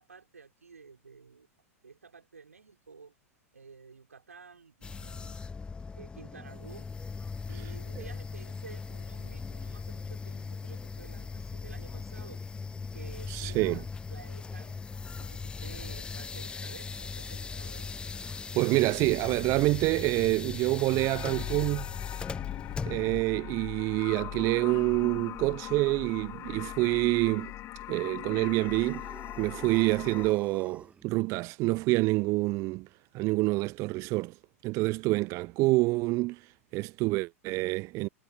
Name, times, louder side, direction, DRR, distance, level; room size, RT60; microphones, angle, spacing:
voice 1, 0.0-1.5 1.8-3.1 3.5-5.4 5.9-6.9 7.5-12.4 12.9-14.8 15.2-17.9, right 5 dB, 85° right, 5.4 m, -51 dB
sound 1, 4.8-23.2, left 4 dB, 10° left, 0.5 m, -39 dB
voice 2, 13.3-13.8 18.5-21.9 22.8-27.5 27.9-29.1 29.4-32.9 33.1-34.4 34.6-38.1, right 22 dB, 40° right, 0.5 m, -27 dB
sound 2, 21.0-30.3, left 15 dB, 35° left, 2.7 m, -40 dB
sound 3, 28.4-31.0, right 5 dB, 15° right, 1.5 m, -49 dB
figure-of-eight pair, 95°, 8 cm